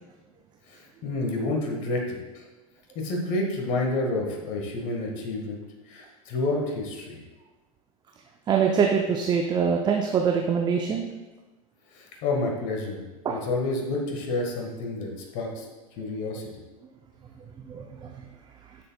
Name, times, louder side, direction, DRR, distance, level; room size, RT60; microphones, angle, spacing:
voice 1, 0.7-2.4 2.9-5.6 5.9-7.2 11.9-13.0 13.3-15.7 16.0-16.4, left 2 dB, 45° left, 1 dB, 1.6 m, -29 dB
voice 2, 8.5-11.1 13.2-13.4 17.7-18.1, right 6 dB, 25° right, 3 dB, 0.6 m, -24 dB
9.7 x 6.8 x 2.3 m, 1.2 s
figure-of-eight pair, 90°, 19 cm